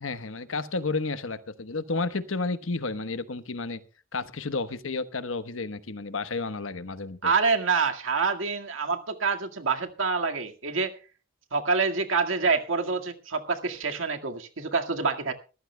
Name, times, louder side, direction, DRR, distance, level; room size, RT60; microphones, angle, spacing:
voice 1, 0.0-3.8 4.1-7.3, left 3 dB, 80° left, 12 dB, 1.1 m, -31 dB
voice 2, 7.2-10.9 11.5-15.3, right 4 dB, 75° right, 4 dB, 1.9 m, -26 dB
23.5 x 14.5 x 2.2 m, 0.35 s
head